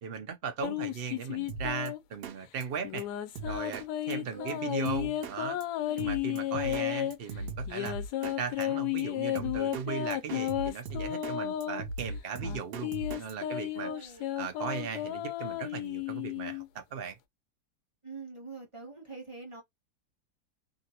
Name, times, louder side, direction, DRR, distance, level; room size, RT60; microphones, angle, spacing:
voice 1, 0.0-3.1 3.4-5.6 6.0-13.9 14.4-17.2, right 6 dB, 55° right, 0.7 m, -38 dB
sound 1, 0.6-2.2 2.8-7.2 7.7-11.8 12.4-16.7, left 12 dB, 80° left, 1.1 m, -33 dB
Drum kit, 1.5-1.9 2.2-2.4 2.6-2.7 3.0-3.1 3.4-3.9 4.1-4.2 4.5-4.6 4.9-5.4 5.6-5.7 6.0-6.9 7.1-8.4 8.6-8.7 9.0-9.1 9.4-9.9 10.1-11.4 11.6-13.3, right 2 dB, 75° right, 1.1 m, -38 dB
voice 2, 4.1-4.7 5.9-6.1 13.8-14.3 18.0-19.6, right 4 dB, 25° right, 0.9 m, -45 dB
2.9 x 2.6 x 2.8 m
omnidirectional pair, 1.8 m